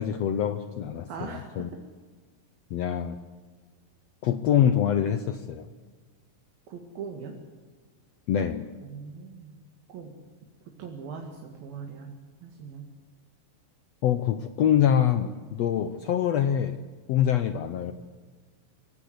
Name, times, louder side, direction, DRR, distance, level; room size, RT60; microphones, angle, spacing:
voice 1, 0.0-1.7 2.7-3.2 4.2-5.7 8.3-8.7 14.0-16.8 17.1-17.9, left 9 dB, 80° left, 10 dB, 1.5 m, -25 dB
voice 2, 1.1-1.7 6.7-7.3 8.8-9.6 9.9-10.1 10.8-12.1 12.4-12.9, right 6 dB, 85° right, 2 dB, 4.0 m, -40 dB
26.0 x 17.0 x 8.1 m, 1.5 s
omnidirectional pair, 4.1 m